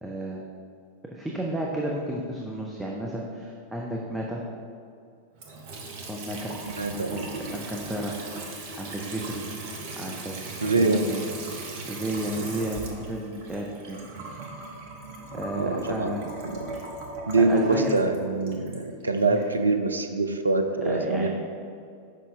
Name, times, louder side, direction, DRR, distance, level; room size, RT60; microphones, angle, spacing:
voice 1, 0.0-0.4 1.1-4.4 6.1-6.5 6.9-7.2 7.5-8.1 8.8-9.4 10.0-10.3 10.6-11.3 11.9-14.3 15.3-16.2 17.4-17.9 19.3-19.4 20.8-21.3, right 1 dB, 5° right, -3 dB, 0.7 m, -32 dB
Water tap faucet / Sink (filling or washing) / Trickle dribble, 5.4-19.5, right 2 dB, 50° right, 1.0 m, -38 dB
voice 2, 6.8-7.3 10.6-11.0 15.6-16.8 17.3-21.3, right 3 dB, 80° right, 6 dB, 0.4 m, -24 dB
6.7 x 5.5 x 3.6 m, 2.3 s
figure-of-eight pair, 90°, 0 cm